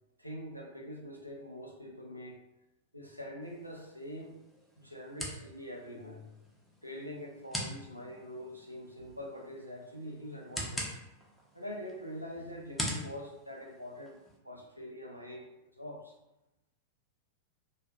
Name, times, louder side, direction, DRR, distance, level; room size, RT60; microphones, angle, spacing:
voice 1, 0.2-2.4 2.9-4.3 4.8-6.3 6.8-10.9 11.5-14.2 14.4-16.1, equal, 90° right, 0 dB, 0.4 m, -44 dB
sound 1, 3.4-14.4, equal, 5° left, 0.5 m, -44 dB
2.4 x 2.3 x 2.3 m, 0.92 s
figure-of-eight pair, 90°, 0 cm